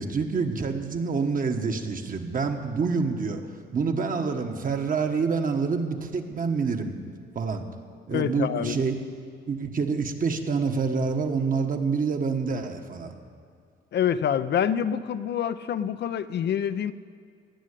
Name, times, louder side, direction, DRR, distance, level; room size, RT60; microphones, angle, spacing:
voice 1, 0.0-3.4 3.7-7.0 7.3-7.6 8.1-8.9 9.5-13.1, right 5 dB, 45° right, 5 dB, 1.4 m, -27 dB
voice 2, 8.1-8.8 13.9-16.9, left 9 dB, 60° left, 12 dB, 0.6 m, -26 dB
17.0 x 6.4 x 9.9 m, 2.2 s
cardioid pair, 90°, 20 cm